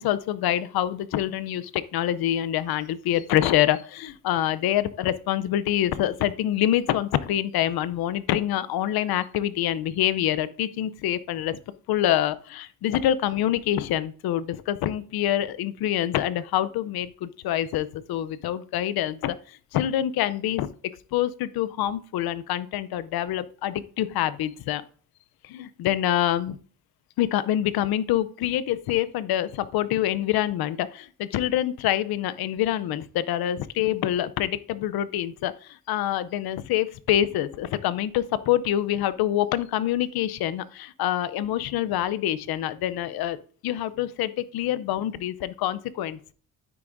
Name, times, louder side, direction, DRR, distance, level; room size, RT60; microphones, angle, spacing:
voice 1, 0.0-11.6 11.9-20.7 21.1-24.8 25.5-26.6 27.2-43.4 43.6-46.3, left 12 dB, 80° left, 16 dB, 0.7 m, -26 dB
9.5 x 8.5 x 2.6 m, 0.43 s
cardioid pair, 140°, 36 cm